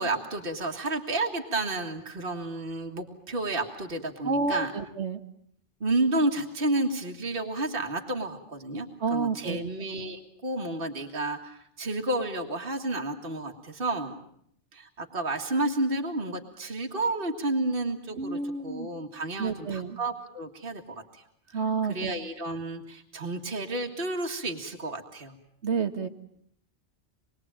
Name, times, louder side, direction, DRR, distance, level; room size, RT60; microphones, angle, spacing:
voice 1, 0.0-4.7 5.8-14.2 14.7-18.4 18.6-21.2 21.9-25.4, right 2 dB, 50° right, 2 dB, 2.2 m, -31 dB
voice 2, 4.2-5.2 9.0-9.7 18.2-18.9 19.4-20.0 21.5-22.1 25.6-26.1, right 4 dB, 75° right, 9 dB, 1.9 m, -29 dB
26.5 x 21.5 x 8.9 m, 0.69 s
omnidirectional pair, 1.2 m